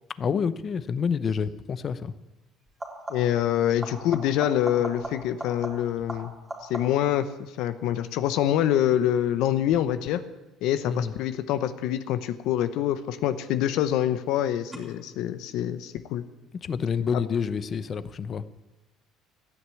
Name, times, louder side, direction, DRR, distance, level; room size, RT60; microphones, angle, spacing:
voice 1, 0.2-2.1 10.9-11.1 16.6-18.4, left 6 dB, 35° left, 15 dB, 0.7 m, -28 dB
sound 1, 1.2-1.5 2.7-3.5 3.8-7.2 12.6-13.2 14.7-14.8, right 1 dB, 10° right, 3.2 m, -40 dB
voice 2, 3.1-6.3 6.6-10.2 10.6-16.2 17.1-17.2, left 11 dB, 75° left, 11 dB, 0.9 m, -25 dB
14.5 x 9.7 x 8.5 m, 1.0 s
cardioid pair, 130°, 0 cm